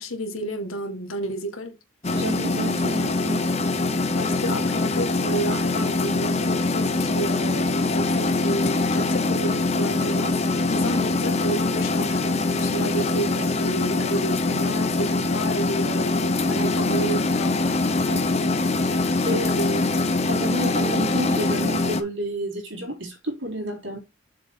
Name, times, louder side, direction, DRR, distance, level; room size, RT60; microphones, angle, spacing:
voice 1, 0.0-1.8 3.9-17.6 19.3-19.8, right 2 dB, 85° left, 1.6 m, -31 dB
sound 1, 2.0-22.0, left 3 dB, 30° left, 0.7 m, -23 dB
voice 2, 2.1-3.4 5.5-5.6 16.5-16.7 18.1-18.3 19.2-19.5 20.3-24.0, equal, 65° right, 3.6 m, -30 dB
6.9 x 4.2 x 4.6 m
head